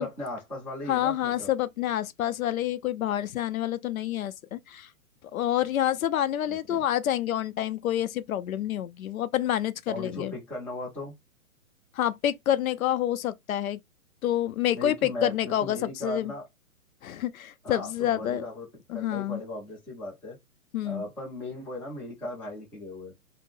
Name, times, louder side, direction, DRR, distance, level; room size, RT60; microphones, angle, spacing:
voice 1, 0.0-1.5 6.5-6.8 9.9-11.1 14.8-16.5 17.6-18.7 18.9-20.4 20.8-23.1, left 1 dB, 5° left, 0.5 m, -37 dB
voice 2, 0.9-4.9 5.3-10.3 11.9-13.8 14.2-16.3 17.0-18.5 18.9-19.4 20.7-21.0, left 12 dB, 70° left, 0.6 m, -28 dB
3.6 x 2.1 x 2.6 m
hypercardioid pair, 140°, 43 cm